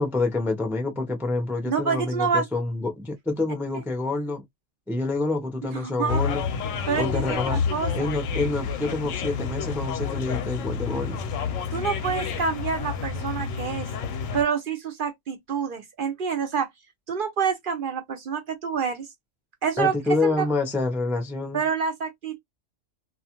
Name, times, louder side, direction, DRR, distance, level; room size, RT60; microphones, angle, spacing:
voice 1, 0.0-4.4 4.9-6.4 7.0-7.6 7.9-11.2 19.8-21.6, left 3 dB, 5° right, 0.4 m, -27 dB
voice 2, 1.7-2.4 5.7-6.2 6.9-8.1 11.7-13.9 14.3-16.7 17.1-19.1 19.6-19.9 20.2-20.5 21.5-22.4, right 6 dB, 55° right, 0.6 m, -27 dB
sound 1, 6.1-14.4, left 6 dB, 85° left, 1.0 m, -29 dB
2.4 x 2.4 x 2.8 m
omnidirectional pair, 1.3 m